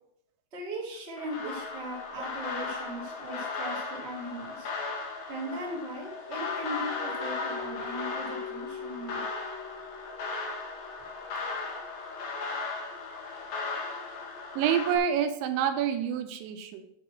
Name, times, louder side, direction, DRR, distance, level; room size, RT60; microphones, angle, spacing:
voice 1, 0.5-4.7 5.3-9.2 11.0-11.2, right 1 dB, 25° right, -4 dB, 1.3 m, -39 dB
sound 1, 1.2-15.0, left 4 dB, 65° left, 1.9 m, -36 dB
voice 2, 14.6-16.9, right 8 dB, 85° right, 7 dB, 3.0 m, -27 dB
8.6 x 4.9 x 6.0 m, 0.75 s
omnidirectional pair, 5.3 m